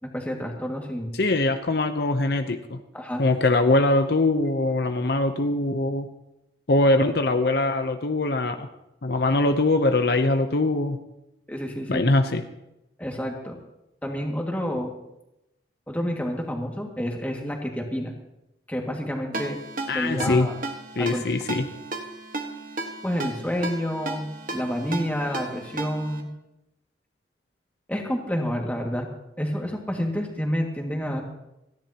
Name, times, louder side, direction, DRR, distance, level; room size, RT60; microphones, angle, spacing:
voice 1, 0.0-1.1 2.9-3.2 11.5-12.1 13.0-13.6 14.0-14.9 15.9-18.1 18.7-19.6 19.9-20.5 21.0-21.2 23.0-24.3 24.5-26.3 27.9-29.1 29.4-31.2, equal, 10° left, 0 dB, 2.0 m, -29 dB
voice 2, 1.1-2.8 3.2-6.1 6.7-8.7 9.0-11.0 11.9-12.4 19.9-20.5 21.0-21.7, left 2 dB, 55° left, 7 dB, 0.7 m, -22 dB
Ringtone, 19.3-26.2, right 2 dB, 45° right, 1.4 m, -34 dB
29.5 x 10.5 x 2.9 m, 0.90 s
head